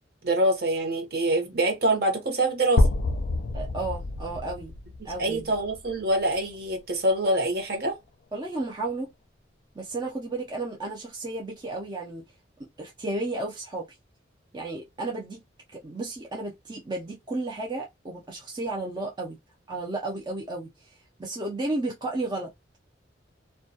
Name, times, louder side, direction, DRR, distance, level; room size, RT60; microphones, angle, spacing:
voice 1, 0.2-2.9 5.2-8.0, right 1 dB, 55° right, 0.8 m, -25 dB
sound 1, 2.8-6.7, left 2 dB, 55° left, 0.4 m, -28 dB
voice 2, 3.5-4.7 5.0-5.5 8.3-9.1 9.8-12.2 12.8-13.9 14.5-15.4 15.7-19.4 19.7-22.8, right 2 dB, 25° right, 0.4 m, -33 dB
2.2 x 2.2 x 2.7 m
head